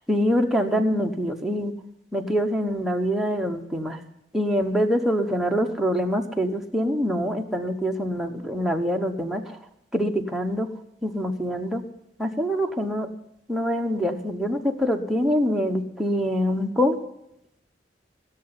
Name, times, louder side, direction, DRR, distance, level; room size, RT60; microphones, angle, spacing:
voice 1, 0.1-1.7 2.1-4.0 4.3-9.6 9.9-10.7 11.0-11.8 12.2-13.1 13.5-17.0, equal, ahead, 1 dB, 1.0 m, -25 dB
16.0 x 6.8 x 9.7 m, 0.83 s
head